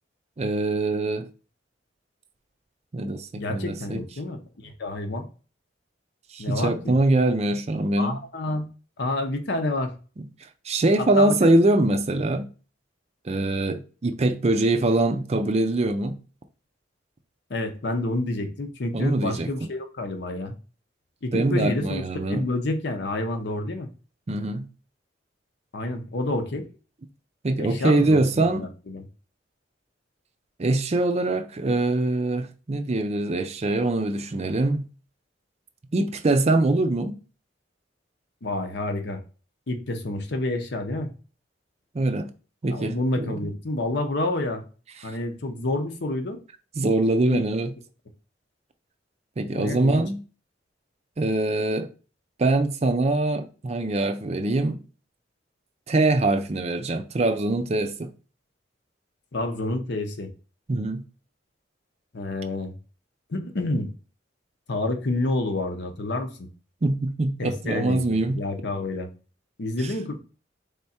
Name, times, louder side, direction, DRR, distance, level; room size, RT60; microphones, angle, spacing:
voice 1, 0.4-1.3 2.9-4.0 6.3-8.2 10.2-10.3 10.6-12.5 13.2-16.2 18.9-19.5 21.3-22.5 24.3-24.7 27.4-28.7 30.6-34.9 35.9-37.2 41.9-42.3 42.6-43.5 45.0-45.1 46.8-47.7 49.4-50.2 51.2-51.9 52.4-54.8 55.9-58.1 60.7-61.0 66.8-68.4 69.8-69.9, right 2 dB, 35° right, 0.5 m, -23 dB
voice 2, 3.3-5.3 6.4-6.9 8.0-8.7 9.0-9.9 11.0-11.5 17.5-20.6 21.2-23.9 25.7-26.7 27.6-29.1 38.4-39.2 39.7-41.1 42.7-44.7 45.0-46.4 47.3-47.4 49.5-50.0 59.3-60.3 62.1-62.7 63.3-63.9 64.7-66.5 67.4-69.1 69.6-70.2, left 2 dB, 65° left, 0.8 m, -29 dB
3.6 x 3.4 x 4.2 m
head